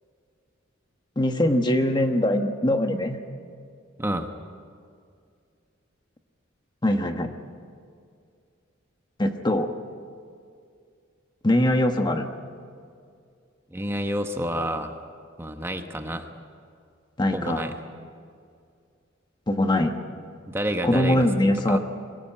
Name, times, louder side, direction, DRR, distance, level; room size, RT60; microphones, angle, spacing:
voice 1, 1.2-3.2 6.8-7.3 9.2-9.7 11.4-12.3 17.2-17.7 19.5-20.0 20.8-21.8, left 1 dB, 20° left, 6 dB, 1.1 m, -22 dB
voice 2, 4.0-4.3 13.7-14.9 15.4-16.3 17.3-17.7 20.5-21.3 21.7-21.8, equal, 15° right, 5 dB, 1.2 m, -29 dB
23.0 x 18.0 x 8.9 m, 2.3 s
head